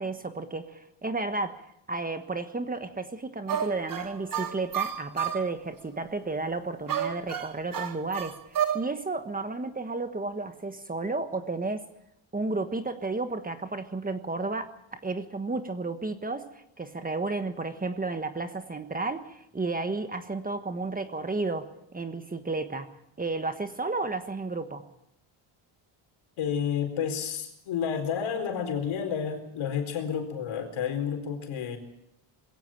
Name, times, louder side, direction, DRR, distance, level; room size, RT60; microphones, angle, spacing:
voice 1, 0.0-1.5 1.9-11.8 12.3-22.9 23.2-24.8, right 3 dB, 15° right, 8 dB, 1.3 m, -32 dB
sound 1, 3.5-5.5 6.9-8.9, right 9 dB, 40° right, 1.5 m, -31 dB
voice 2, 26.4-31.8, left 7 dB, 75° left, 6 dB, 4.5 m, -30 dB
21.5 x 16.5 x 9.0 m, 0.80 s
cardioid pair, 150°, 49 cm